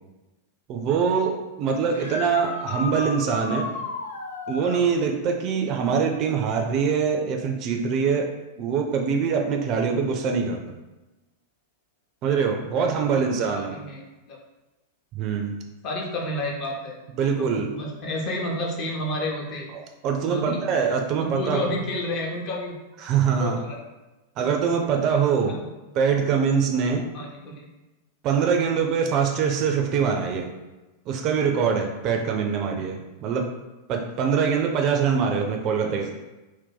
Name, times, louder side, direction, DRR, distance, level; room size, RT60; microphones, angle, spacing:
voice 1, 0.7-3.7 4.5-8.3 8.6-10.8 12.2-13.7 15.2-15.6 17.2-17.7 20.0-21.7 23.0-23.6 24.4-25.6 25.9-27.0 28.2-30.5 31.1-33.5 33.9-36.1, right 6 dB, 40° right, 3 dB, 0.4 m, -23 dB
sound 1, 1.9-4.9 8.2-8.3 10.3-10.4 16.6-16.7, left 3 dB, 70° left, 0.4 m, -33 dB
voice 2, 12.8-14.0 14.3-14.4 15.8-17.0 17.4-19.7 20.2-20.6 21.2-22.8 23.4-23.8 24.4-24.5 25.5-25.7 27.1-27.7 35.8-36.1, left 1 dB, 40° left, -1 dB, 0.7 m, -31 dB
2.6 x 2.1 x 3.8 m, 1.1 s
figure-of-eight pair, 90°, 0 cm